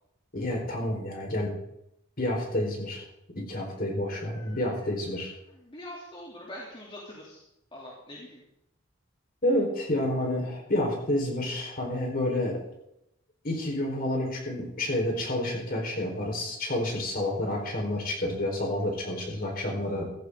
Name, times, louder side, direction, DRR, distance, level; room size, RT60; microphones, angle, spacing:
voice 1, 0.3-1.5 2.2-3.0 3.3-5.3 9.4-12.6 13.4-20.0, left 1 dB, 45° left, 0 dB, 4.4 m, -29 dB
voice 2, 4.1-4.9 5.5-7.4 7.7-8.4, left 1 dB, 25° left, -4 dB, 3.0 m, -44 dB
15.5 x 15.0 x 3.8 m, 0.81 s
head